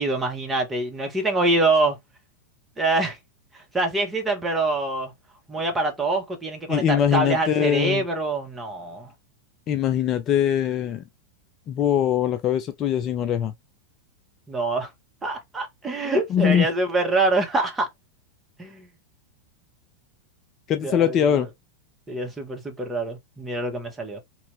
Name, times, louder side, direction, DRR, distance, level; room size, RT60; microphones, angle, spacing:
voice 1, 0.0-2.0 2.8-3.2 3.5-5.1 5.5-9.1 14.5-14.9 15.2-17.9 18.6-18.9 20.8-21.5 22.1-24.2, right 2 dB, 10° right, 1.2 m, -25 dB
voice 2, 6.7-8.0 9.7-11.0 11.7-13.5 16.3-16.7 20.7-21.5, left 9 dB, 30° left, 0.4 m, -22 dB
3.0 x 2.8 x 3.4 m
figure-of-eight pair, 90°, 0 cm